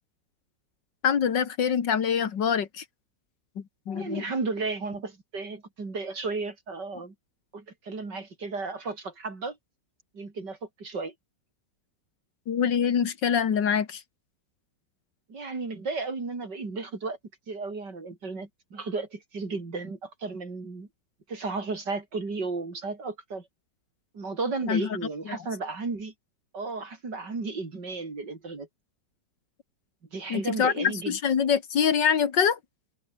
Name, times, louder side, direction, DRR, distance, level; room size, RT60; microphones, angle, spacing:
voice 1, 1.0-2.8 3.9-4.2 12.5-14.0 24.6-24.9 25.3-25.4 30.3-32.6, left 7 dB, 85° left, 2.4 m, -25 dB
voice 2, 3.9-7.1 7.5-9.6 10.1-11.1 15.3-17.2 17.5-20.9 21.3-23.5 24.1-26.1 26.5-28.7 30.1-31.2, right 3 dB, 75° right, 4.7 m, -34 dB
omnidirectional pair, 1.9 m